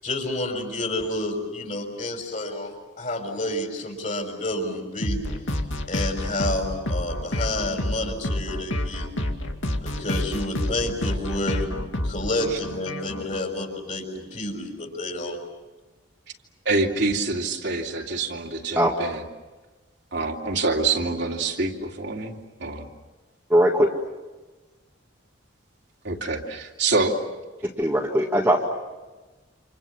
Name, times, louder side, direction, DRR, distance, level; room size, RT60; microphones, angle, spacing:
voice 1, 0.0-5.2 5.9-9.1 9.8-11.7 12.0-15.4, left 1 dB, 40° left, 3 dB, 6.0 m, -29 dB
sound 1, 5.0-13.4, left 1 dB, 80° left, 2.4 m, -29 dB
voice 2, 16.6-19.2 20.1-22.9 26.0-27.2, right 3 dB, 60° right, 0 dB, 3.0 m, -26 dB
voice 3, 23.5-23.9 27.8-28.7, equal, 10° right, -2 dB, 2.0 m, -20 dB
29.0 x 28.0 x 7.3 m, 1.2 s
head